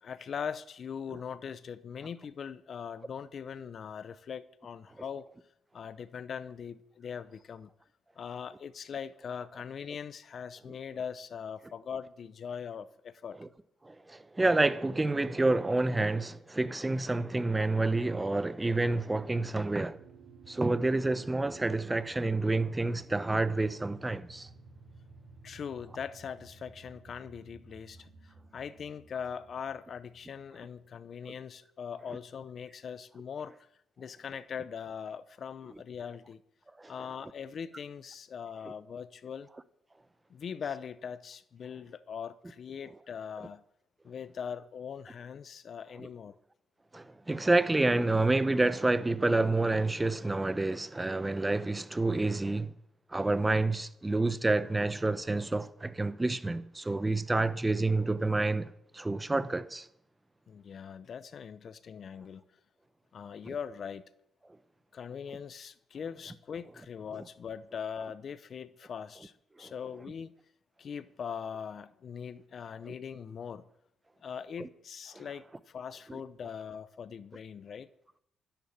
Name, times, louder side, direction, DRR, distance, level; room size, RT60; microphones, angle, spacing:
voice 1, 0.0-5.3 5.7-7.7 8.2-13.4 25.4-33.7 34.0-36.4 36.9-39.5 40.3-43.6 44.0-46.4 60.5-62.4 63.1-64.0 64.9-69.3 69.6-70.3 70.8-73.7 74.2-77.9, left 7 dB, 55° left, 0.7 m, -41 dB
voice 2, 13.8-20.0 20.5-24.5 36.8-36.9 46.9-52.7 53.1-59.9 63.5-63.6 69.6-69.7 74.6-74.7 75.1-75.2, right 2 dB, 15° right, 0.8 m, -28 dB
sound 1, 18.6-30.9, right 3 dB, 55° right, 5.5 m, -55 dB
12.0 x 10.5 x 7.2 m
cardioid pair, 90°, 0 cm